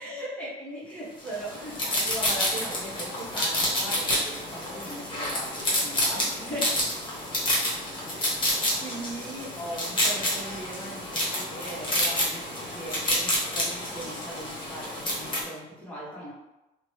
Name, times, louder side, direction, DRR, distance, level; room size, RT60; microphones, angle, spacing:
voice 1, 0.0-6.8 8.1-16.3, right 1 dB, 10° left, -8 dB, 1.1 m, -39 dB
sound 1, 1.3-15.4, left 1 dB, 30° left, 1.1 m, -29 dB
2.9 x 2.1 x 3.1 m, 0.97 s
cardioid pair, 110°, 17 cm